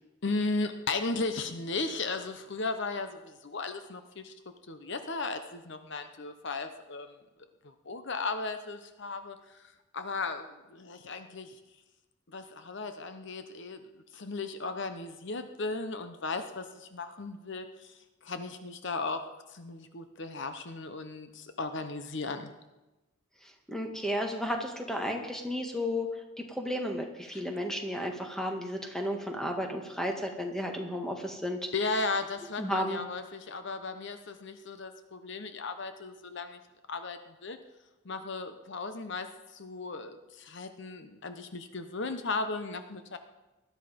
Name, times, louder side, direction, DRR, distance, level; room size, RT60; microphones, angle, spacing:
voice 1, 0.2-4.3 4.7-7.1 7.6-11.6 12.3-22.5 27.3-27.4 31.7-36.6 36.9-37.6 38.0-43.2, left 3 dB, 60° left, 8 dB, 1.0 m, -36 dB
voice 2, 23.7-26.1 26.4-31.6 32.6-33.0, equal, 5° left, 2 dB, 1.8 m, -33 dB
19.5 x 12.5 x 5.2 m, 1.1 s
head